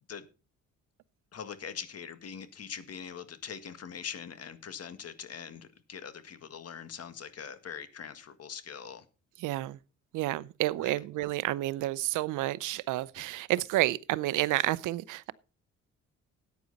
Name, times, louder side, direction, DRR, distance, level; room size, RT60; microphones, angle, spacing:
voice 1, 1.3-9.0 10.8-10.9, left 7 dB, 55° left, 1.8 m, -42 dB
voice 2, 9.4-9.8 10.1-15.3, right 16 dB, 90° right, 0.6 m, -30 dB
14.0 x 9.4 x 4.1 m
cardioid pair, 90°, 30 cm